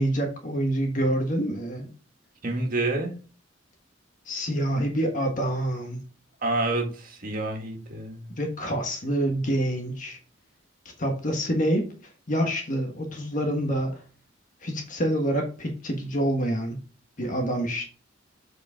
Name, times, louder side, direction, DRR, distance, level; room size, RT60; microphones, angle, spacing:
voice 1, 0.0-1.9 4.2-6.0 8.3-10.2 11.0-11.9 12.3-14.0 14.6-16.8 17.2-17.9, right 1 dB, 40° left, 3 dB, 1.3 m, -27 dB
voice 2, 2.4-3.1 6.4-8.3, right 2 dB, 45° right, 2 dB, 1.9 m, -28 dB
7.9 x 4.8 x 3.5 m, 0.37 s
head